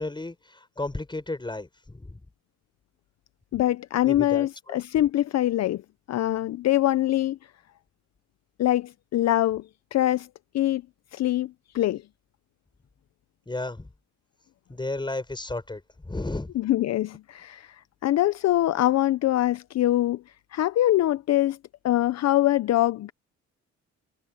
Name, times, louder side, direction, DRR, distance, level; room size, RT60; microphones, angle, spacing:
voice 1, 0.0-2.2 4.0-4.8 13.5-13.9 14.7-16.5, left 2 dB, 15° left, 7.0 m, -33 dB
voice 2, 3.5-5.8 6.1-7.4 8.6-10.3 10.5-10.8 11.1-12.0 16.5-20.2 20.5-21.6 21.8-23.1, left 14 dB, 60° left, 0.6 m, -24 dB
cardioid pair, 90°, 30 cm